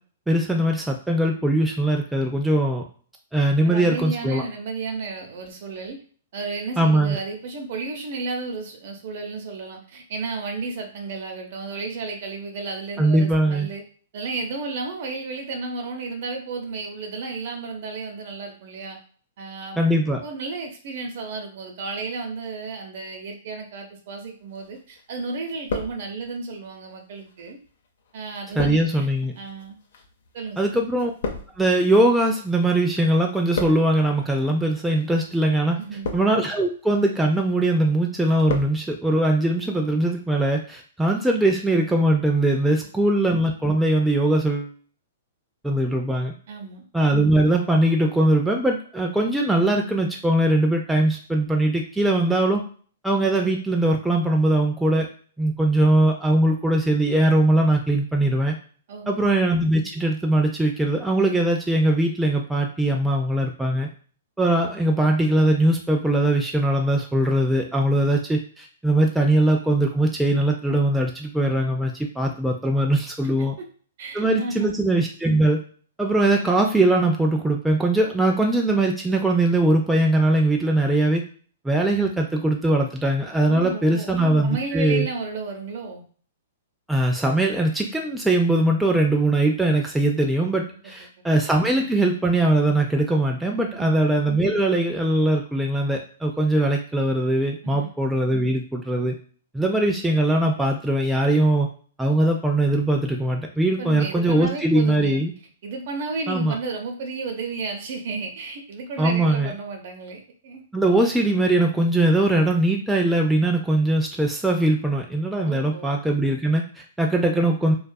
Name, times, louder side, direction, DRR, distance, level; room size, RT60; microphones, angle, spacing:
voice 1, 0.3-2.8 3.3-4.4 6.8-7.2 13.0-13.7 19.8-20.2 28.6-29.3 30.6-31.1 31.6-35.8 36.1-44.7 45.6-46.3 46.9-52.6 53.0-55.1 55.4-58.6 59.1-63.9 64.4-73.6 74.1-75.6 76.0-81.2 81.6-85.1 86.9-99.2 99.5-101.7 102.0-105.3 106.3-106.6 109.0-109.5 110.7-117.7, right 1 dB, 5° right, 0 dB, 0.3 m, -21 dB
voice 2, 3.6-6.0 6.3-13.8 14.1-19.0 19.4-19.8 20.2-27.6 28.1-29.1 29.4-29.8 30.3-30.9 35.8-36.1 46.5-46.8 58.9-59.2 73.6-73.7 74.0-74.8 83.5-84.1 84.4-86.0 93.6-93.9 97.6-97.9 103.8-105.2 105.6-110.6 115.4-116.0, right 4 dB, 60° right, 3 dB, 0.7 m, -33 dB
sound 1, 24.5-25.1 25.4-26.5 27.2-32.8 33.1-34.1 34.8-35.1 35.7-36.6 37.0-37.4 37.8-38.8 39.0-39.1, left 4 dB, 70° left, 0.5 m, -34 dB
2.5 x 2.3 x 2.2 m, 0.43 s
hypercardioid pair, 140°, 0 cm